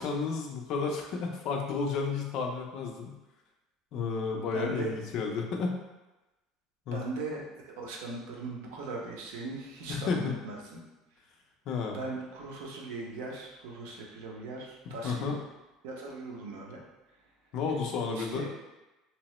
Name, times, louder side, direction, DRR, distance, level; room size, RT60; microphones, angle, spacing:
voice 1, 0.0-3.1 3.9-5.8 6.9-7.0 9.9-10.3 11.7-12.0 15.0-15.4 17.5-18.5, left 5 dB, 45° left, 1 dB, 0.4 m, -32 dB
voice 2, 4.3-4.9 6.9-10.8 11.8-15.4 15.8-16.8 17.1-17.2 18.1-18.5, right 3 dB, 90° right, -1 dB, 0.6 m, -39 dB
2.8 x 2.0 x 2.9 m, 1.0 s
cardioid pair, 165°, 0 cm